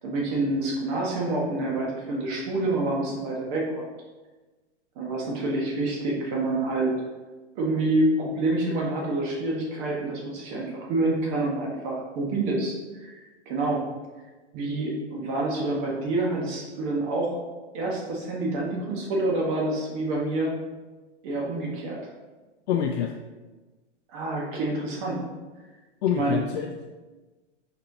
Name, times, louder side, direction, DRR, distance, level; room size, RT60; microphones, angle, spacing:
voice 1, 0.0-3.8 5.0-6.9 7.5-13.2 13.5-13.8 14.5-17.4 17.7-20.6 21.2-22.0 24.1-25.2 26.1-26.4, right 2 dB, 45° right, -2 dB, 1.1 m, -27 dB
voice 2, 22.7-23.1 26.0-26.9, left 8 dB, 65° left, 3 dB, 0.5 m, -26 dB
4.4 x 4.1 x 2.7 m, 1.2 s
hypercardioid pair, 120°, 35 cm